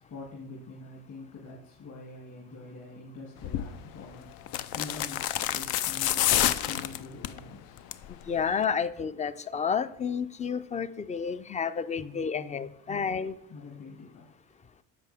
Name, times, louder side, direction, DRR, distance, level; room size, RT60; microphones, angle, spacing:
voice 1, 0.1-7.9 12.0-12.6 12.9-14.3, left 3 dB, 50° left, -3 dB, 2.6 m, -45 dB
sound 1, 3.4-3.7 4.5-7.4 7.8-8.1 8.4-8.5, left 12 dB, 65° left, 0.6 m, -28 dB
voice 2, 8.1-13.3, left 6 dB, 20° left, 15 dB, 0.4 m, -31 dB
10.0 x 6.8 x 3.5 m, 0.75 s
supercardioid pair, 80°, 39 cm